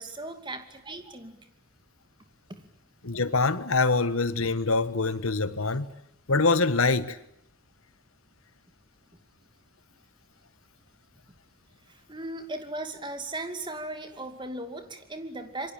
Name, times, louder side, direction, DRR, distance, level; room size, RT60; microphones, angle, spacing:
voice 1, 0.0-1.5 2.5-2.6 11.9-15.7, right 2 dB, 20° right, 2.5 m, -37 dB
voice 2, 3.0-5.9 6.3-7.2, left 3 dB, 80° left, 1.5 m, -24 dB
27.0 x 23.5 x 8.9 m
head